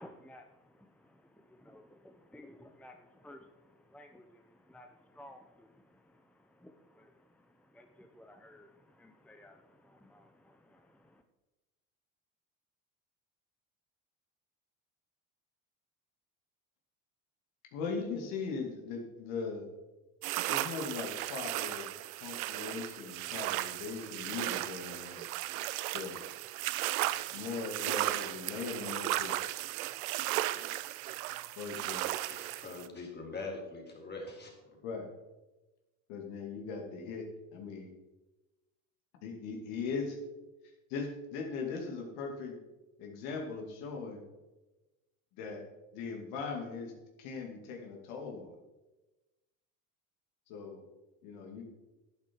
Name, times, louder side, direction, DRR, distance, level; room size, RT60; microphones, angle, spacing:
voice 1, 0.0-11.2, left 1 dB, 5° left, 6 dB, 0.8 m, -56 dB
voice 2, 17.7-19.7 20.4-21.9 22.2-25.3 25.9-26.2 27.3-29.4 31.6-32.1 34.8-35.1 36.1-37.3 37.5-37.9 39.2-40.2 40.9-42.6 43.0-44.2 45.4-45.6 45.9-46.9 47.2-48.6 50.5-50.8 51.2-51.6, left 5 dB, 75° left, 2 dB, 2.5 m, -39 dB
sound 1, 20.2-32.9, right 16 dB, 85° right, 0.6 m, -36 dB
voice 3, 32.2-34.8, left 3 dB, 25° left, 0 dB, 4.0 m, -43 dB
11.5 x 8.7 x 4.6 m, 1.1 s
hypercardioid pair, 80°, 41 cm